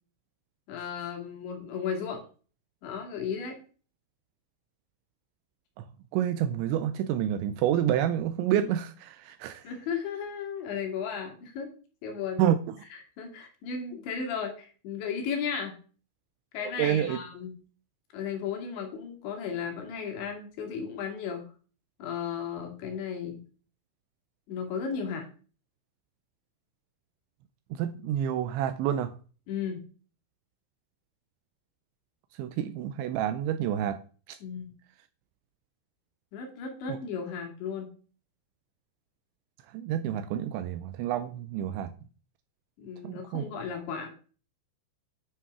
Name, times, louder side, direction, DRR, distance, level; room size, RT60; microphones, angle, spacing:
voice 1, 0.7-2.2 2.8-3.6 9.6-11.7 12.0-12.4 12.9-15.8 16.5-17.6 18.1-21.4 22.0-23.4 24.5-25.3 29.5-29.8 34.4-34.7 36.3-37.9 42.8-44.1, left 6 dB, 65° left, 4.2 m, -35 dB
voice 2, 6.1-9.6 12.4-12.6 16.8-17.2 27.7-29.1 32.4-34.0 34.3-34.4 39.7-41.9 43.0-43.4, right 10 dB, 85° right, 2.6 m, -28 dB
9.8 x 5.9 x 5.9 m
omnidirectional pair, 5.8 m